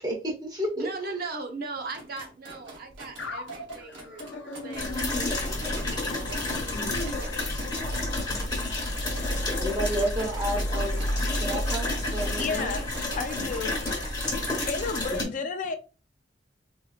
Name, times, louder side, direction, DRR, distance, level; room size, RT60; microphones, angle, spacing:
voice 1, 0.0-0.9 9.3-11.0 11.4-12.7 15.1-15.3, right 1 dB, 20° right, 1.0 m, -31 dB
voice 2, 0.8-7.5, right 3 dB, 55° right, 0.7 m, -39 dB
sound 1, 1.8-15.1, right 2 dB, 70° right, 1.0 m, -44 dB
sound 2, 3.2-8.1, left 2 dB, 75° left, 0.7 m, -38 dB
sound 3, 4.7-15.2, left 2 dB, 20° left, 1.3 m, -30 dB
voice 3, 12.4-13.7 14.7-15.8, left 4 dB, 45° left, 0.4 m, -32 dB
3.9 x 2.9 x 2.4 m
head